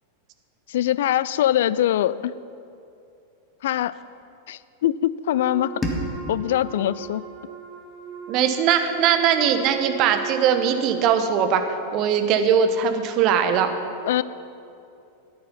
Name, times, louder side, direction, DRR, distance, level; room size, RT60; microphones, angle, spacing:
voice 1, 0.7-2.4 3.6-4.0 4.5-5.8 6.3-7.3 14.1-14.2, left 12 dB, 55° left, 17 dB, 0.3 m, -23 dB
Wind instrument woodwind instrument, 5.3-11.1, right 8 dB, 25° right, 3.7 m, -38 dB
sound 1, 5.8-8.7, left 1 dB, 15° left, 1.8 m, -34 dB
voice 2, 8.3-13.7, right 7 dB, 40° right, 7 dB, 1.1 m, -20 dB
14.0 x 10.0 x 5.6 m, 2.6 s
figure-of-eight pair, 90°, 0 cm